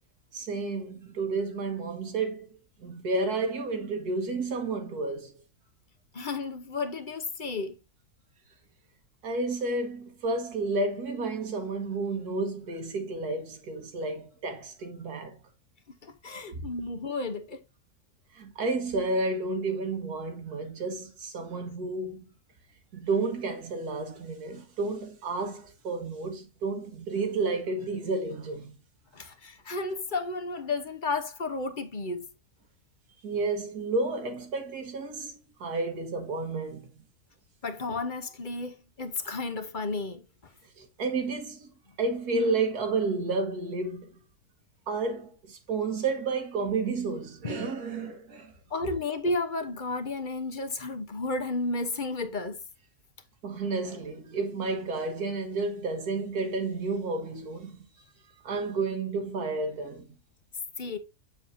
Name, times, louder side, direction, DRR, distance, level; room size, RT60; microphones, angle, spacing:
voice 1, 0.3-2.5 2.8-5.3 9.2-15.4 16.5-16.6 18.3-22.3 22.9-28.8 33.2-36.9 40.8-41.7 42.0-44.1 44.9-48.5 53.4-57.9 58.4-60.1, right 3 dB, 90° right, 2.0 m, -31 dB
voice 2, 6.1-7.8 16.0-17.6 29.1-32.3 37.6-40.2 47.4-47.6 48.7-52.6 60.8-61.0, left 3 dB, 40° left, 0.9 m, -32 dB
7.1 x 7.1 x 2.7 m
omnidirectional pair, 1.6 m